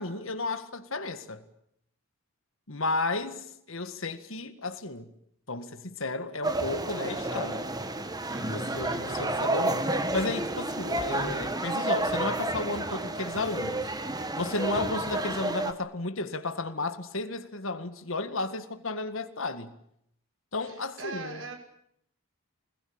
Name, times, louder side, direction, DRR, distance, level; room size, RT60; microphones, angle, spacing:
voice 1, 0.0-1.4 2.7-5.1 5.5-7.7 8.5-13.9 14.4-19.7 20.5-21.5, left 2 dB, 65° left, 1.9 m, -33 dB
sound 1, 6.4-15.7, right 2 dB, 20° right, 1.5 m, -30 dB
voice 2, 8.8-9.2 20.6-21.6, right 3 dB, 60° right, 6.3 m, -41 dB
25.5 x 21.0 x 8.8 m
head